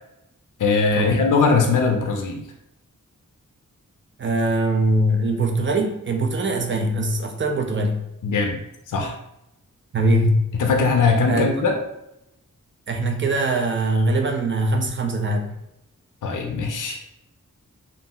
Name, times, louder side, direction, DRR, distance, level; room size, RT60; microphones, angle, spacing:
voice 1, 0.6-2.4 8.2-8.6 8.9-9.2 10.6-11.8 16.2-17.0, left 4 dB, 70° left, 3 dB, 0.5 m, -20 dB
voice 2, 4.2-8.0 9.9-10.4 11.3-11.5 12.9-15.6, right 1 dB, 40° right, 4 dB, 0.4 m, -22 dB
2.4 x 2.0 x 3.7 m, 0.86 s
wide cardioid pair, 100°, 33 cm